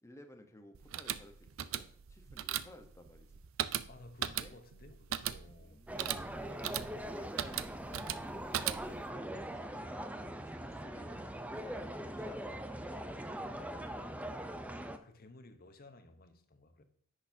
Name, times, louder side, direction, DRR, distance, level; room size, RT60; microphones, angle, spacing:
voice 1, 0.0-3.4 4.2-4.5 5.6-8.4 8.8-11.2 11.5-14.1, left 1 dB, 15° left, 0.9 m, -56 dB
sound 1, 0.7-9.1, right 11 dB, 75° right, 0.5 m, -39 dB
voice 2, 3.9-5.9 14.9-16.8, left 2 dB, 45° left, 0.8 m, -56 dB
sound 2, 5.9-15.0, right 1 dB, 5° right, 0.5 m, -42 dB
10.0 x 6.5 x 2.7 m
head